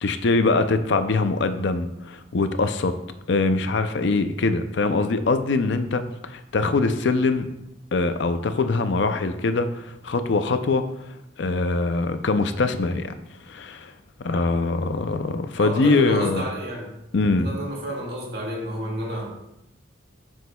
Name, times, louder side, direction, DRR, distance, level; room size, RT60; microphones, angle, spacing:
voice 1, 0.0-3.0 3.3-7.5 7.9-10.8 11.4-13.1 13.5-13.9 14.2-16.4 17.1-17.5, left 3 dB, 70° left, 9 dB, 0.5 m, -23 dB
voice 2, 15.6-16.9 17.3-19.3, equal, 55° right, -3 dB, 1.9 m, -31 dB
9.3 x 6.2 x 2.3 m, 0.86 s
head